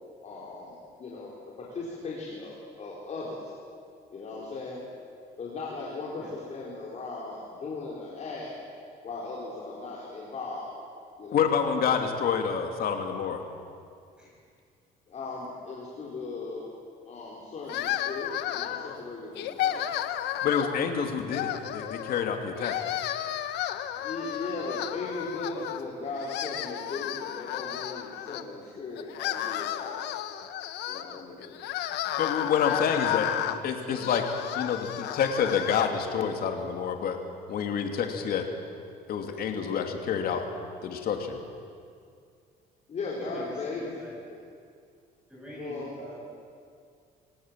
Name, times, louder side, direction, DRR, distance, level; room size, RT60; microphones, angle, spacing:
voice 1, 0.2-3.5 4.1-4.8 5.4-8.5 9.0-10.7 11.2-11.5 15.1-16.7 17.0-19.8 24.0-30.0 30.8-31.6 39.5-39.6 42.9-44.0 44.3-44.4 45.6-46.0, left 3 dB, 45° left, -5 dB, 4.4 m, -38 dB
voice 2, 11.3-13.4 20.4-22.8 32.2-33.3 33.6-34.3 34.5-37.2 37.5-38.5 39.1-40.4 40.8-41.4, left 7 dB, 60° left, 4 dB, 2.7 m, -28 dB
sound 1, 17.7-19.0 19.4-20.8 21.3-22.3 22.6-25.8 26.1-28.4 29.0-35.9, left 12 dB, 80° left, 1.1 m, -33 dB
voice 3, 43.2-44.1 45.3-46.2, equal, 5° right, -6 dB, 8.0 m, -43 dB
25.5 x 18.0 x 7.6 m, 2.3 s
cardioid pair, 110°, 17 cm